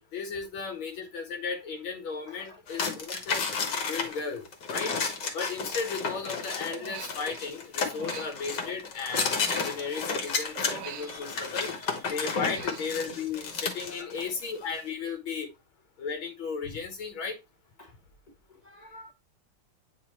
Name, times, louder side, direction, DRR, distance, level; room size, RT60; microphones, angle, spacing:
voice 1, 0.1-5.0 5.3-11.7 12.1-15.5 16.0-17.4, left 5 dB, 85° left, 1.8 m, -35 dB
voice 2, 2.3-2.6 8.3-8.4 11.0-12.7 14.0-14.2 17.8-17.9 18.6-19.1, left 2 dB, 35° left, 0.7 m, -52 dB
sound 1, 2.7-14.3, left 5 dB, 60° left, 1.7 m, -32 dB
Human voice, 6.7-7.5 7.8-10.2 10.6-11.8 12.2-14.0 14.2-14.6, right 8 dB, 85° right, 1.6 m, -46 dB
8.4 x 3.9 x 3.0 m
omnidirectional pair, 2.2 m